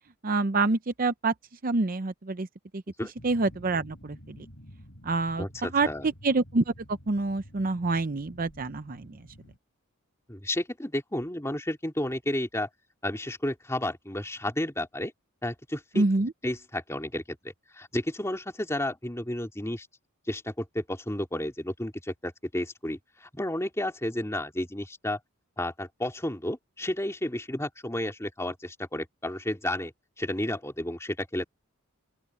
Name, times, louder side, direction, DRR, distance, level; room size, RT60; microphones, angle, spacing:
voice 1, 0.2-1.3 1.6-2.5 2.7-2.8 3.2-4.5 5.0-9.2 16.0-16.3, right 3 dB, 40° right, 0.6 m, -27 dB
sound 1, 3.2-9.6, equal, 60° left, 6.1 m, -50 dB
voice 2, 5.4-6.1 10.3-12.7 13.0-15.1 15.4-16.1 16.4-17.4 17.7-19.9 20.3-25.2 25.6-29.9 30.2-31.4, left 1 dB, 15° left, 2.7 m, -32 dB
open air
head